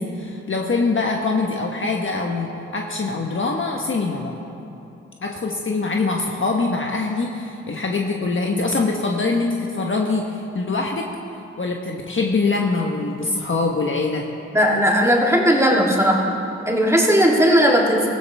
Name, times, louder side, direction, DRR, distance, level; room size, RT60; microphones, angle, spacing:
voice 1, 0.0-4.3 5.2-11.1 11.6-14.3, left 3 dB, 45° left, 0 dB, 1.4 m, -23 dB
voice 2, 14.5-16.2 16.7-18.1, equal, 10° right, -3 dB, 3.0 m, -17 dB
17.5 x 15.0 x 3.5 m, 2.9 s
supercardioid pair, 45°, 29 cm